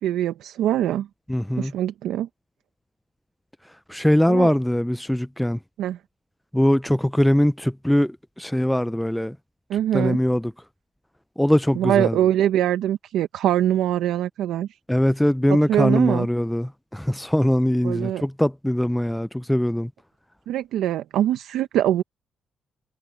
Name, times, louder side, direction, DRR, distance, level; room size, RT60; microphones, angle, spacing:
voice 1, 0.0-1.1 1.6-2.3 4.3-4.5 5.8-6.0 9.7-10.2 11.7-14.7 15.5-16.3 17.8-18.3 20.5-22.0, right 11 dB, 85° right, 0.9 m, -23 dB
voice 2, 1.3-1.7 3.9-5.6 6.5-8.1 8.4-9.3 9.9-10.4 11.4-12.1 14.9-19.9, equal, 5° left, 0.3 m, -21 dB
cardioid pair, 90°, 0 cm